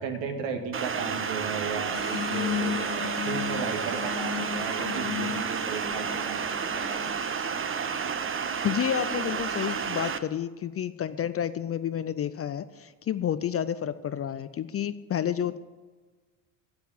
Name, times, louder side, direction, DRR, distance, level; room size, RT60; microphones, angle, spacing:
voice 1, 0.0-7.0, right 5 dB, 65° right, 4 dB, 2.1 m, -35 dB
sound 1, 0.7-10.2, right 6 dB, 25° right, 0.8 m, -31 dB
sound 2, 1.9-7.3, left 9 dB, 85° left, 0.7 m, -35 dB
voice 2, 8.6-15.6, left 9 dB, 30° left, 13 dB, 0.5 m, -30 dB
9.4 x 7.9 x 8.5 m, 1.3 s
supercardioid pair, 80°, 48 cm